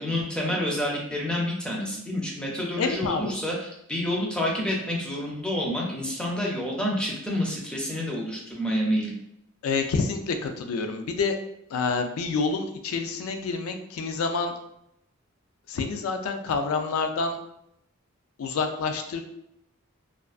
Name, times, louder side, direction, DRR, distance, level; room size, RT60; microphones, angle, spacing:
voice 1, 0.0-9.1, left 1 dB, 5° left, -3 dB, 0.4 m, -28 dB
voice 2, 2.8-3.3 9.6-11.4 11.7-14.5 15.7-17.4 18.4-19.2, left 4 dB, 80° left, 6 dB, 0.3 m, -28 dB
2.4 x 2.3 x 2.4 m, 0.77 s
head